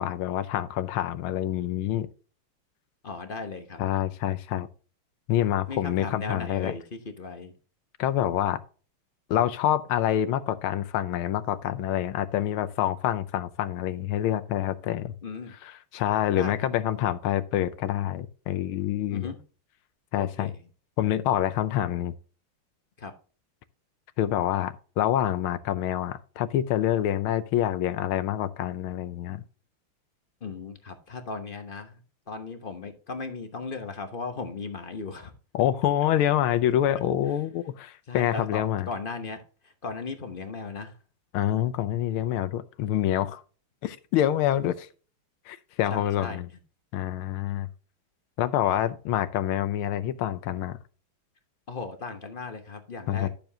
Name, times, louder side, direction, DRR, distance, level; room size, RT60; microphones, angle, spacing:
voice 1, 0.0-2.1 3.8-4.7 5.3-6.7 8.0-8.6 9.3-15.1 15.6-19.3 20.1-20.5 21.0-22.1 24.2-29.4 35.5-38.9 41.3-43.4 43.8-44.9 45.5-46.5 46.9-47.7 48.4-50.8 53.1-53.3, left 11 dB, 80° left, 1.5 m, -26 dB
voice 2, 3.0-3.8 5.7-7.5 15.2-15.5 16.3-16.5 19.1-19.4 20.1-20.6 23.0-23.1 30.4-32.0 32.3-35.3 37.3-37.4 38.1-41.0 45.9-46.4 51.7-53.3, left 4 dB, 45° left, 0.7 m, -37 dB
12.0 x 7.0 x 2.8 m
omnidirectional pair, 2.4 m